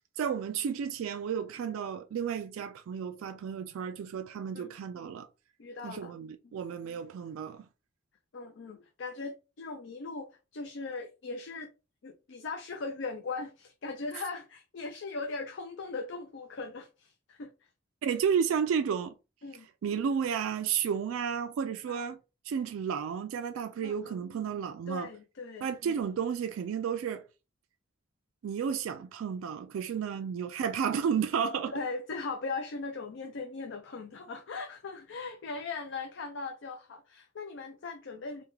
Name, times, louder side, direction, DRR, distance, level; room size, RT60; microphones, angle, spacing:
voice 1, 0.2-5.3 5.8-7.7 18.0-19.1 19.8-22.2 22.5-25.1 25.6-27.2 28.4-31.7, right 7 dB, 80° right, 0.3 m, -32 dB
voice 2, 5.6-6.1 6.4-6.6 8.3-11.7 12.0-17.5 19.4-19.7 21.9-22.1 23.8-24.2 24.9-25.7 31.7-38.4, left 3 dB, 60° left, 0.4 m, -39 dB
3.4 x 2.2 x 3.1 m
head